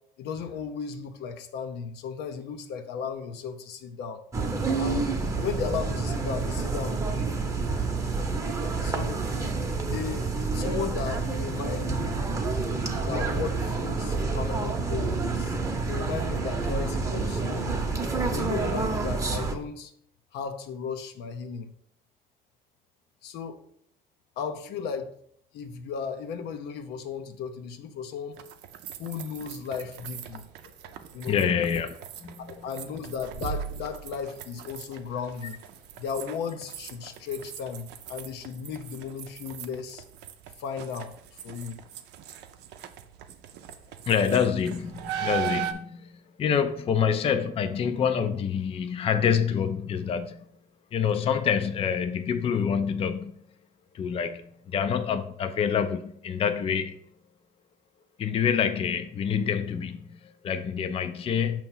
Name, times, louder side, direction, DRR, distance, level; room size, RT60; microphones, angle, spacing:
voice 1, 0.2-4.2 4.8-5.0 5.4-7.3 8.8-9.3 9.8-12.2 13.0-17.8 18.3-19.9 20.3-21.7 23.2-23.6 24.4-25.1 25.5-28.4 29.0-30.5 31.1-31.5 32.5-35.6 36.0-40.0 40.6-41.8, left 6 dB, 80° left, 0.7 m, -35 dB
sound 1, 4.3-19.6, right 3 dB, 20° right, 0.8 m, -28 dB
sound 2, 28.3-45.7, right 9 dB, 85° right, 0.5 m, -39 dB
voice 2, 31.2-32.7 44.1-50.5 50.9-53.4 53.9-57.0 58.2-61.6, left 7 dB, 35° left, 0.4 m, -27 dB
5.7 x 3.0 x 5.4 m
cardioid pair, 110°, 17 cm